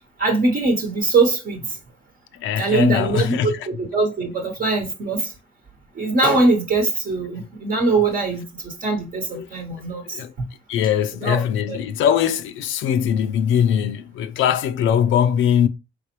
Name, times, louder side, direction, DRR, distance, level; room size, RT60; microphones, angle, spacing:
voice 1, 0.2-1.8 2.6-5.3 5.9-10.4 11.2-11.4 11.7-11.8, right 3 dB, 50° right, 1.0 m, -22 dB
voice 2, 2.4-3.5 9.3-9.5 10.1-10.3 10.7-15.7, left 9 dB, 80° left, 0.4 m, -21 dB
4.4 x 3.3 x 2.9 m
cardioid pair, 90°, 20 cm